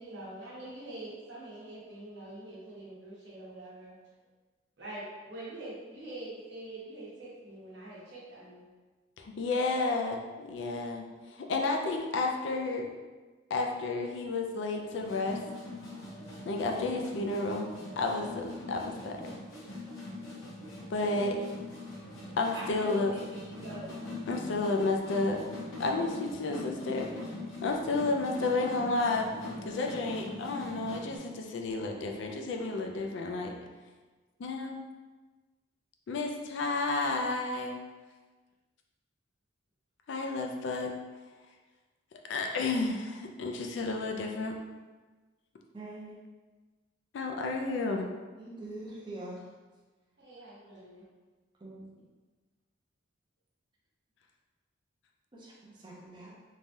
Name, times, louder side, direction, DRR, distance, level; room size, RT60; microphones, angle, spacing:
voice 1, 0.0-3.9 4.8-8.7 22.5-24.0 50.2-51.0, right 1 dB, 60° right, -7 dB, 1.0 m, -44 dB
voice 2, 9.2-12.9 13.5-15.4 16.4-17.7 18.0-19.4 20.9-21.4 22.4-23.1 24.3-25.4 25.8-27.1 27.6-29.3 29.6-33.5 34.4-34.8 36.1-37.8 40.1-40.9 42.3-44.6 47.1-48.1, left 3 dB, 65° left, 2 dB, 0.3 m, -31 dB
sound 1, 14.9-31.2, left 2 dB, 85° left, 0.8 m, -42 dB
voice 3, 45.7-46.2 48.4-49.4 51.6-51.8 55.3-56.3, right 2 dB, 25° right, -5 dB, 0.5 m, -44 dB
3.2 x 2.2 x 2.6 m, 1.3 s
head